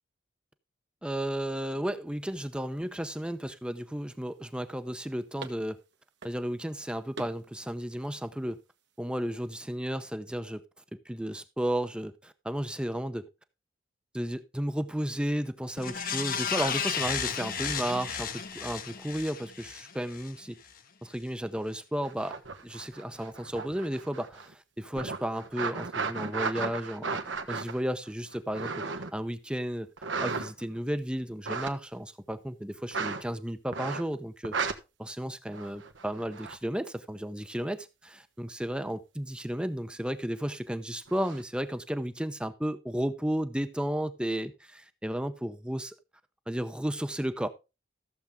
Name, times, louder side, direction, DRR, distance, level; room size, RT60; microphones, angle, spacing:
voice 1, 1.0-5.8 6.2-8.6 9.0-10.6 10.9-13.3 14.1-20.6 21.0-22.3 22.6-27.2 27.5-34.6 35.0-45.9 46.5-47.5, equal, 5° right, 0.7 m, -33 dB
sound 1, 2.1-9.8, right 3 dB, 65° right, 1.4 m, -52 dB
sound 2, 15.8-20.3 20.7-20.8, left 7 dB, 50° left, 1.0 m, -33 dB
sound 3, 22.0-24.5 24.9-29.2 30.0-30.8 31.3-31.7 32.9-33.2 33.7-34.1 34.4-34.7 35.5-36.6 41.1-41.4, right 4 dB, 85° right, 1.4 m, -35 dB
14.5 x 7.2 x 3.7 m
head